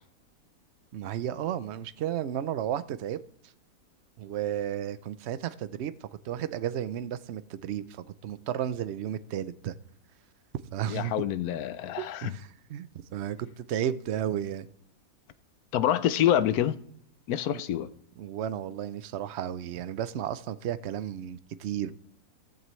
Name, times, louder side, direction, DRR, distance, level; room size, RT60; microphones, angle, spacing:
voice 1, 0.9-3.2 4.2-9.7 10.7-11.1 12.0-14.7 18.2-21.9, right 10 dB, 60° right, 0.8 m, -33 dB
voice 2, 10.9-12.3 15.7-16.8 17.3-17.9, left 11 dB, 80° left, 1.2 m, -26 dB
15.0 x 14.5 x 3.2 m
omnidirectional pair, 1.6 m